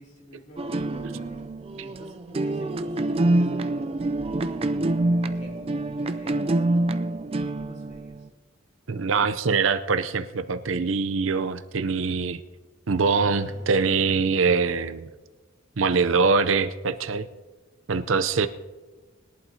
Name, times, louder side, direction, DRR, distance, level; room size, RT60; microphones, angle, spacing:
voice 1, 0.0-4.8 5.1-8.3 8.9-9.2 13.0-13.8, equal, 35° left, -1 dB, 2.7 m, -47 dB
sound 1, 0.6-8.3, right 2 dB, 30° right, 0.4 m, -26 dB
voice 2, 8.9-12.4 12.9-15.1 15.8-17.3 17.9-18.5, right 4 dB, 70° right, 10 dB, 0.6 m, -23 dB
21.0 x 11.0 x 2.8 m, 1.2 s
head